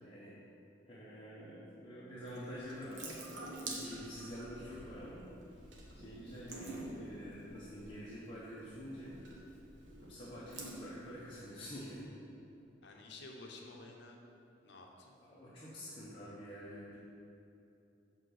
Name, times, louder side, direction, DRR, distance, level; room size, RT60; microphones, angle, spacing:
voice 1, 0.0-0.4 0.9-3.2 3.7-5.3 5.9-9.2 10.0-12.0 15.3-17.0, equal, 30° left, -9 dB, 1.1 m, -47 dB
Water tap faucet / Sink (filling or washing) / Drip, 2.2-12.0, right 2 dB, 75° right, 1.3 m, -49 dB
voice 2, 6.4-6.9 12.8-14.2 14.6-15.2, left 2 dB, 65° left, 1 dB, 0.9 m, -52 dB
7.3 x 4.1 x 6.5 m, 2.8 s
head